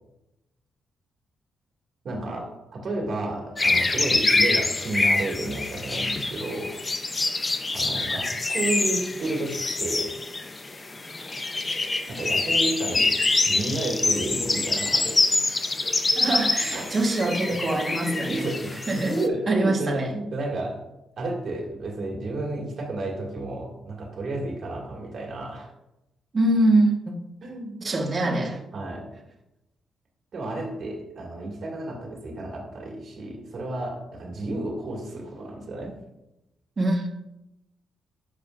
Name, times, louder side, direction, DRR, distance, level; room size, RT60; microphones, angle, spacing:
voice 1, 2.0-6.8 7.7-10.1 12.1-13.1 13.4-16.0 16.7-16.9 17.3-18.7 19.0-20.8 21.2-25.7 27.4-27.8 28.7-29.1 30.3-35.9, right 2 dB, 50° right, -1 dB, 2.1 m, -31 dB
sound 1, 3.6-19.3, left 3 dB, 25° left, 0.6 m, -25 dB
voice 2, 16.1-20.1 26.3-27.1 27.8-28.6 36.8-37.1, right 2 dB, 30° right, 1 dB, 1.3 m, -24 dB
11.5 x 6.6 x 2.5 m, 0.93 s
cardioid pair, 135°, 0 cm